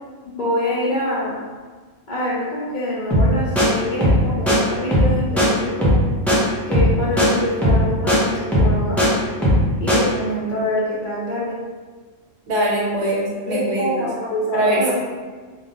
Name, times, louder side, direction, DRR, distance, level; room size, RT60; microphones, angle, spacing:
voice 1, 0.2-1.4 2.1-6.0 6.7-9.0 9.8-11.6 13.5-14.9, left 1 dB, 55° left, -6 dB, 0.5 m, -25 dB
sound 1, 3.1-3.3 3.6-3.7 4.0-4.2 4.5-4.6 4.9-5.1 5.4-5.5 5.8-6.0 6.3-6.4 6.7-6.9 7.2-7.3 7.6-8.2 8.5-9.1 9.4-9.6 9.9-10.0, equal, ahead, 0.4 m, -16 dB
voice 2, 12.5-14.0 14.5-14.9, right 1 dB, 75° right, -4 dB, 1.0 m, -22 dB
2.2 x 2.1 x 2.9 m, 1.4 s
omnidirectional pair, 1.3 m